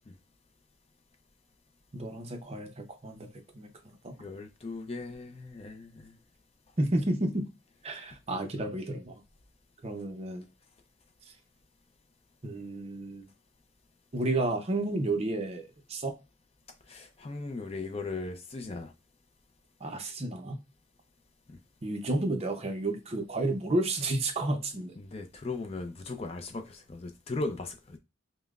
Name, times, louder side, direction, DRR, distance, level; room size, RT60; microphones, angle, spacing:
voice 1, 1.9-3.3 3.5-4.2 6.8-7.5 7.8-9.2 9.8-10.4 12.4-13.3 14.1-16.2 19.8-20.6 21.8-25.0, right 2 dB, 30° right, 0.6 m, -31 dB
voice 2, 4.2-6.2 16.9-18.9 25.0-28.0, left 3 dB, 30° left, 0.5 m, -38 dB
5.4 x 2.1 x 2.4 m
head